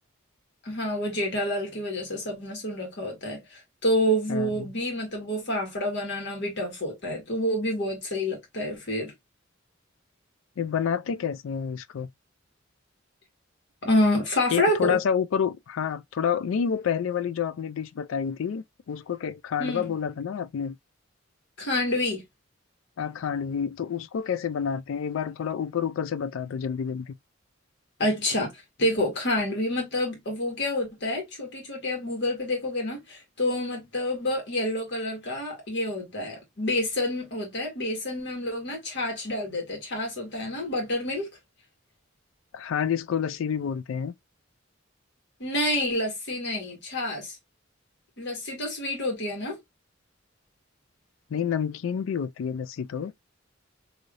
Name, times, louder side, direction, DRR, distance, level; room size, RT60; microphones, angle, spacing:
voice 1, 0.6-9.1 13.8-15.0 19.6-19.9 21.6-22.2 28.0-28.5 28.8-41.3 45.4-47.4 48.2-49.6, left 1 dB, 60° left, 1.5 m, -28 dB
voice 2, 4.3-4.7 10.6-12.1 14.5-20.8 23.0-27.1 42.5-44.1 51.3-53.1, left 7 dB, 80° left, 0.4 m, -29 dB
3.2 x 2.7 x 2.5 m
head